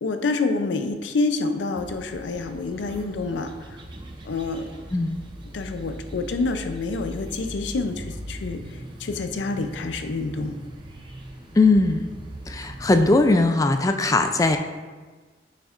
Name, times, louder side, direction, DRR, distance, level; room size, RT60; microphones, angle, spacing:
voice 1, 0.0-3.5 4.3-4.7 5.5-8.6 9.0-10.6, left 3 dB, 85° left, 8 dB, 0.5 m, -27 dB
sound 1, 1.8-13.5, right 1 dB, 25° right, 0.6 m, -40 dB
voice 2, 11.6-12.0 12.5-14.6, left 2 dB, 20° left, 7 dB, 0.3 m, -19 dB
6.6 x 6.3 x 2.4 m, 1.4 s
head